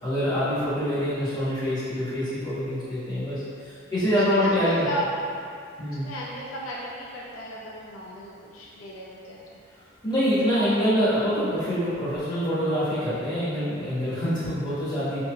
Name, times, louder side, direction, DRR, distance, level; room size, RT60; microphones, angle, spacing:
voice 1, 0.0-4.9 5.8-6.1 10.0-15.2, equal, 20° left, -13 dB, 1.4 m, -25 dB
voice 2, 4.3-5.1 6.0-9.6, equal, 90° left, -5 dB, 0.6 m, -35 dB
5.1 x 2.9 x 2.3 m, 2.3 s
head